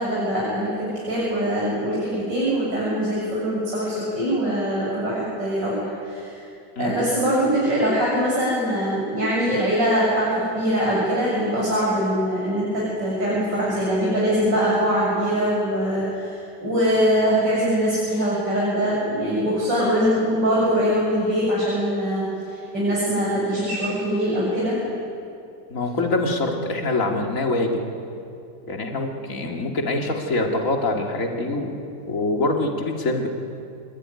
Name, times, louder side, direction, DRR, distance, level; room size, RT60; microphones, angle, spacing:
voice 1, 0.0-6.5 6.8-24.8, equal, 90° right, -6 dB, 7.5 m, -23 dB
voice 2, 25.7-27.8 28.7-31.7 32.1-33.3, left 2 dB, 45° left, 1 dB, 2.8 m, -24 dB
27.0 x 21.5 x 9.7 m, 2.7 s
omnidirectional pair, 1.9 m